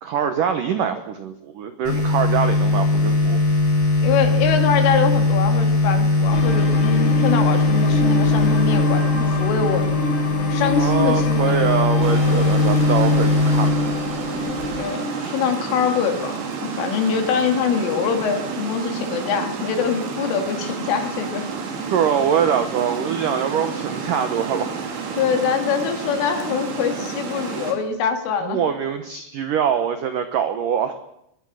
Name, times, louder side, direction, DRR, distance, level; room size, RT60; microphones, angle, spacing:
voice 1, 0.0-3.4 10.8-14.0 21.9-24.7 28.4-30.9, right 8 dB, 80° right, 8 dB, 1.9 m, -23 dB
sound 1, 1.8-14.8, left 2 dB, 25° left, 7.9 m, -20 dB
voice 2, 4.0-9.9 10.5-11.7 14.8-16.3 16.6-21.5 25.2-28.6, left 7 dB, 80° left, 5 dB, 5.0 m, -24 dB
sound 2, 6.3-15.1, left 2 dB, 60° left, 4.9 m, -27 dB
Water, 12.0-27.7, right 5 dB, 60° right, 4.9 m, -30 dB
22.5 x 22.0 x 6.5 m, 0.79 s
omnidirectional pair, 5.7 m